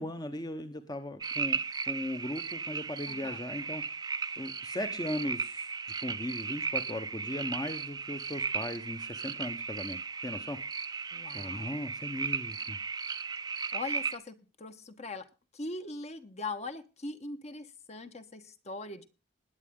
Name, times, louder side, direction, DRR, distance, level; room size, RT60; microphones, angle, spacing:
voice 1, 0.0-1.6 1.9-3.8 4.4-5.7 6.0-10.6 11.3-12.8, left 1 dB, 20° left, 1.0 m, -38 dB
sound 1, 1.2-14.2, right 5 dB, 20° right, 0.7 m, -36 dB
voice 2, 3.1-3.4 11.1-11.7 13.7-15.3 15.5-19.1, left 3 dB, 35° left, 1.3 m, -41 dB
20.0 x 8.9 x 3.7 m
head